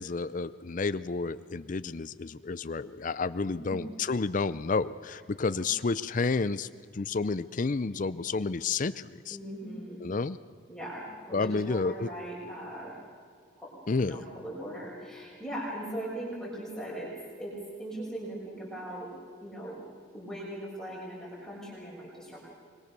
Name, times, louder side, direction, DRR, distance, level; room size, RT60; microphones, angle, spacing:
voice 1, 0.0-6.7 6.9-9.4 10.0-10.4 11.3-12.1 13.9-14.2, left 4 dB, 40° left, 14 dB, 0.5 m, -30 dB
voice 2, 3.6-3.9 5.5-5.6 9.3-10.0 10.7-12.9 13.6-17.5 17.8-19.1 19.4-19.8 20.1-22.5, right 1 dB, 5° left, -6 dB, 6.5 m, -39 dB
25.5 x 22.0 x 6.7 m, 2.1 s
head